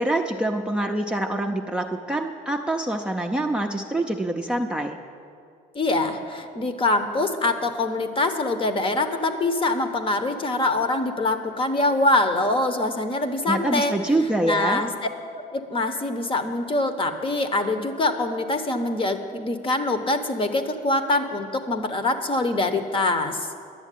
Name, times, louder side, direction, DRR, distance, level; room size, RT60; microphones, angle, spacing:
voice 1, 0.0-5.0 13.5-14.9, right 1 dB, 5° right, 3 dB, 0.6 m, -25 dB
voice 2, 5.7-13.9 14.4-15.1 15.5-23.5, left 2 dB, 30° left, 8 dB, 0.9 m, -24 dB
11.0 x 7.0 x 9.2 m, 2.3 s
cardioid pair, 110°, 17 cm